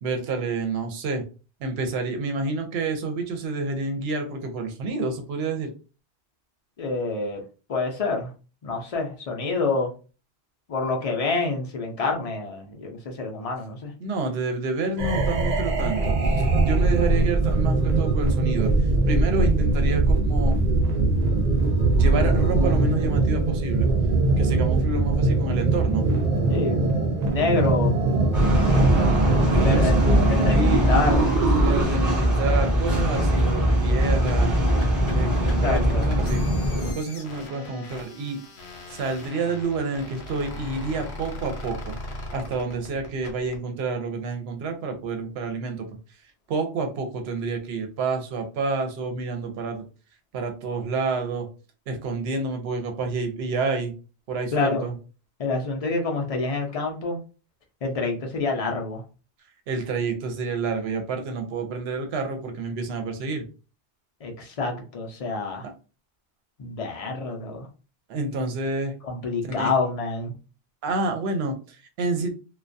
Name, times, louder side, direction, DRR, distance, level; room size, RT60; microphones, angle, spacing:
voice 1, 0.0-1.2 1.6-5.7 14.0-18.7 19.1-20.6 21.9-23.9 24.4-26.0 28.7-30.1 30.5-30.9 31.6-34.5 35.1-36.4 36.9-38.4 38.9-41.9 42.3-45.9 46.5-49.8 50.3-51.5 51.9-53.9 54.3-55.0 59.7-63.5 65.6-65.7 68.1-68.9 69.4-69.7 70.8-72.3, right 3 dB, 70° right, 5 dB, 0.8 m, -29 dB
voice 2, 6.8-7.4 7.7-8.3 8.6-9.9 10.7-13.9 26.5-26.9 27.2-27.9 29.6-29.9 30.3-31.4 35.4-36.1 54.5-54.9 55.4-57.2 57.8-59.0 64.2-65.7 66.6-67.7 69.0-70.3, left 3 dB, 50° left, 1 dB, 0.4 m, -27 dB
sound 1, 15.0-31.8, right 3 dB, 55° right, 0.4 m, -21 dB
sound 2, 28.3-36.9, equal, 20° right, 0.7 m, -21 dB
sound 3, 33.9-43.6, left 2 dB, 75° left, 0.9 m, -39 dB
2.2 x 2.2 x 2.5 m, 0.34 s
omnidirectional pair, 1.1 m